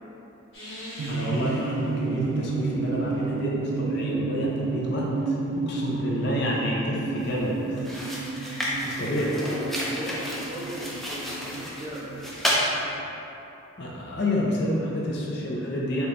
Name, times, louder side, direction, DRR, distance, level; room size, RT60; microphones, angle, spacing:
sound 1, 0.5-3.6 4.7-8.2 10.5-10.6, equal, 75° left, 1.4 m, -46 dB
sound 2, 1.0-13.0, right 3 dB, 85° right, 0.3 m, -31 dB
voice 1, 1.1-8.2 8.8-9.3 13.8-16.1, left 1 dB, 55° left, -4 dB, 0.5 m, -29 dB
sound 3, 7.2-7.4 7.8-12.7, equal, ahead, 0.4 m, -31 dB
voice 2, 8.8-12.3, equal, 30° right, -11 dB, 0.8 m, -37 dB
5.1 x 3.0 x 2.5 m, 3.0 s
head